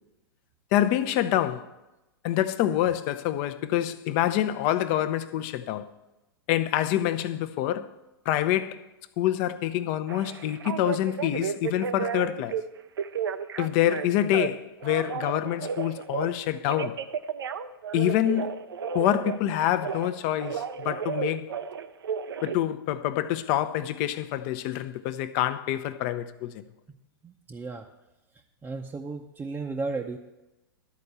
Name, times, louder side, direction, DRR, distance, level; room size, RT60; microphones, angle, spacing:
voice 1, 0.7-1.7 2.2-5.9 6.5-7.9 8.3-8.8 9.2-12.6 13.6-17.0 17.9-18.6 18.9-21.5 22.4-26.6, left 12 dB, 45° left, 0.7 m, -26 dB
Telephone, 10.1-12.6 13.0-14.5 14.8-16.3 16.7-20.1 20.4-22.6, right 7 dB, 80° right, 0.6 m, -33 dB
voice 2, 27.2-27.9 28.6-30.2, right 3 dB, 15° right, 0.6 m, -34 dB
12.5 x 4.4 x 8.1 m
hypercardioid pair, 115°, 12 cm